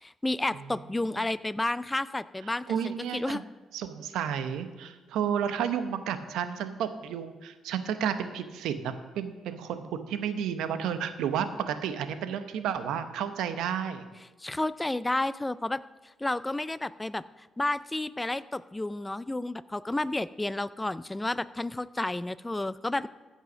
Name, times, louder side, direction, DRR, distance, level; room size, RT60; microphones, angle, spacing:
voice 1, 0.0-3.4 14.4-15.8 16.2-17.2 17.6-23.1, left 2 dB, 15° left, 17 dB, 0.4 m, -31 dB
voice 2, 2.7-3.4 3.7-14.0, right 8 dB, 85° right, 10 dB, 0.9 m, -32 dB
15.0 x 5.6 x 6.2 m, 1.2 s
cardioid pair, 90°, 0 cm